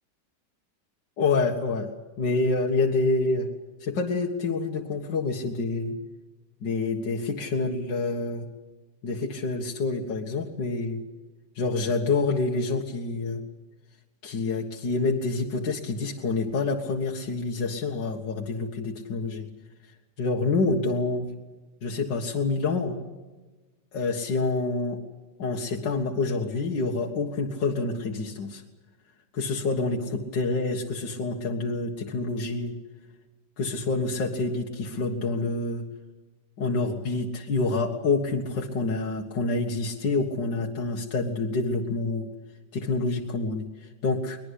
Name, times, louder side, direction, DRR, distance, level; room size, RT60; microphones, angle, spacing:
voice 1, 1.2-1.9 2.2-3.5 3.8-6.0 6.6-8.5 9.0-11.0 11.6-13.4 14.2-19.5 20.2-21.3 21.8-23.0 23.9-25.0 25.4-28.6 29.3-32.8 33.6-35.8 36.6-42.3 42.7-44.4, left 3 dB, 80° left, 0 dB, 2.3 m, -27 dB
23.0 x 21.0 x 8.3 m, 1.2 s
omnidirectional pair, 1.9 m